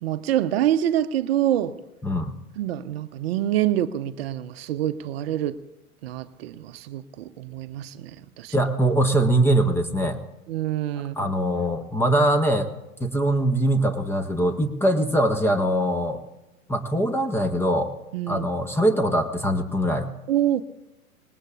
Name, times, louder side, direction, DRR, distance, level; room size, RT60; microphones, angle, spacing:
voice 1, 0.0-1.8 2.6-5.6 6.0-8.5 10.5-11.3 18.1-18.4 20.3-20.6, right 12 dB, 45° right, 11 dB, 0.8 m, -26 dB
voice 2, 2.0-2.4 8.5-10.2 11.2-12.7 13.0-16.2 16.7-17.9 18.3-20.1, right 1 dB, 5° left, 7 dB, 0.7 m, -22 dB
25.5 x 20.0 x 2.4 m, 0.98 s
figure-of-eight pair, 105°, 44 cm